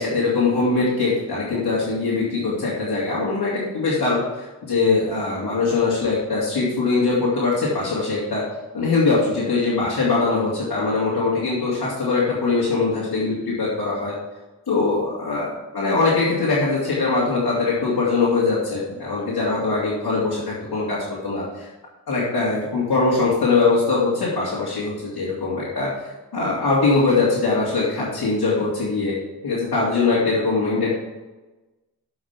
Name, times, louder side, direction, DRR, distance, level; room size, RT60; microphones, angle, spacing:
voice 1, 0.0-8.4 8.7-14.1 14.7-21.7 22.1-29.1 29.4-30.9, left 3 dB, 65° left, -7 dB, 2.8 m, -22 dB
7.5 x 5.8 x 7.2 m, 1.1 s
cardioid pair, 45°, 38 cm